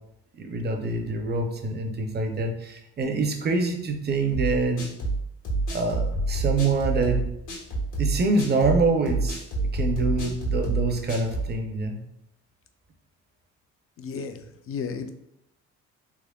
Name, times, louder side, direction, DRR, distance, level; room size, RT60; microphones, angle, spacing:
voice 1, 0.4-4.9 5.7-7.2 8.0-12.0, right 3 dB, 35° right, 4 dB, 0.5 m, -26 dB
sound 1, 4.3-11.5, right 2 dB, 80° left, 1.4 m, -28 dB
voice 2, 14.0-14.4 14.7-15.1, left 6 dB, 50° left, 8 dB, 0.4 m, -33 dB
3.5 x 3.1 x 2.2 m, 0.80 s
cardioid pair, 90°, 30 cm